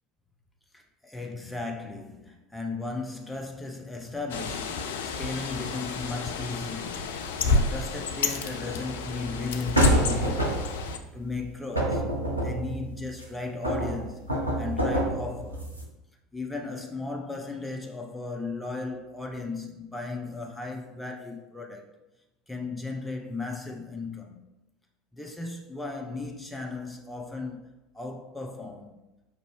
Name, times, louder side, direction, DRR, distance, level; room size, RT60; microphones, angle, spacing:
voice 1, 0.7-7.1 7.5-12.0 12.4-15.7 16.3-21.9 22.5-24.4 25.1-27.7 27.9-29.0, left 3 dB, 5° left, 0.7 m, -36 dB
Bird, 4.3-11.0, left 3 dB, 65° left, 0.3 m, -29 dB
sound 1, 9.8-10.9 11.8-13.2 13.6-15.8, right 1 dB, 90° right, 0.6 m, -27 dB
5.2 x 2.6 x 3.2 m
figure-of-eight pair, 70°, 0 cm